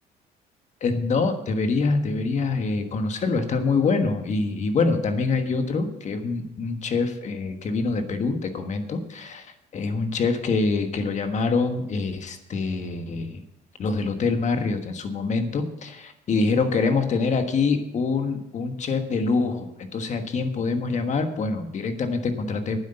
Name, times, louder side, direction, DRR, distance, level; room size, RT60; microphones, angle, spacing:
voice 1, 0.8-13.4 13.8-22.8, left 4 dB, 45° left, 7 dB, 1.5 m, -25 dB
9.7 x 8.2 x 6.7 m, 0.86 s
cardioid pair, 110°, 17 cm